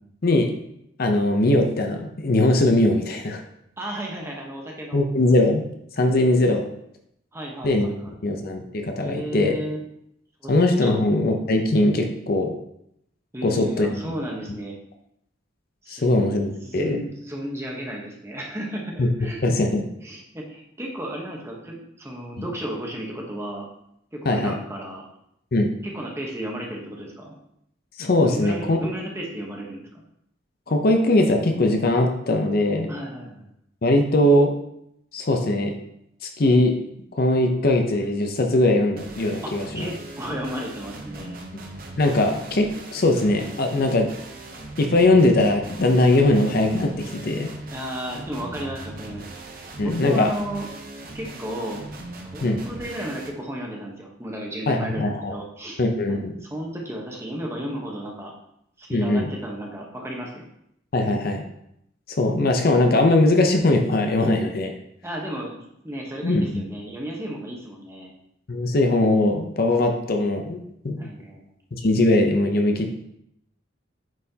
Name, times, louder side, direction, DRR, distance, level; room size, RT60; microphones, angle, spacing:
voice 1, 0.2-0.5 1.0-3.4 4.9-5.7 6.0-6.7 7.6-7.9 8.2-9.6 10.5-12.6 13.4-14.0 15.9-17.0 19.0-19.1 19.4-19.9 22.4-22.5 24.3-24.5 25.5-25.7 28.0-28.9 30.7-32.9 33.8-34.5 35.1-35.8 36.2-36.8 37.1-39.9 42.0-44.1 44.8-47.5 49.8-50.4 52.4-52.6 54.7-55.3 55.8-56.3 58.9-59.3 60.9-61.4 62.2-64.7 66.2-66.6 68.5-71.1 71.8-72.9, left 2 dB, 50° left, 4 dB, 0.6 m, -20 dB
voice 2, 3.8-5.0 7.3-8.1 9.0-9.8 10.4-10.5 10.8-11.0 13.3-14.7 15.8-16.3 16.6-19.4 20.0-23.7 24.1-25.0 25.8-27.4 28.2-30.0 32.9-33.5 39.4-41.4 47.7-49.2 49.8-50.7 51.1-51.8 52.3-55.8 56.1-58.3 58.8-60.5 65.0-68.1 71.0-71.5, equal, 15° right, -1 dB, 1.1 m, -34 dB
sound 1, 39.0-53.3, right 2 dB, 50° right, 0.8 m, -39 dB
8.9 x 4.3 x 2.8 m, 0.77 s
head